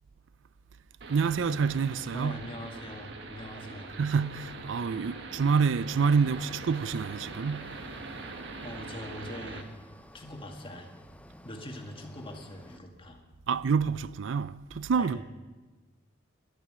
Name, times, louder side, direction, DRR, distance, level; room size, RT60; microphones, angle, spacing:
sound 1, 1.0-9.6, right 3 dB, 65° right, 1.6 m, -43 dB
voice 1, 1.1-2.4 4.0-7.8 13.5-15.2, right 5 dB, 85° right, 0.4 m, -27 dB
voice 2, 2.1-4.0 8.6-9.7 10.1-10.9 11.4-13.2 15.0-15.2, left 1 dB, 30° left, 2.0 m, -42 dB
sound 2, 5.9-12.8, left 1 dB, 5° left, 0.5 m, -53 dB
11.5 x 11.0 x 9.9 m
head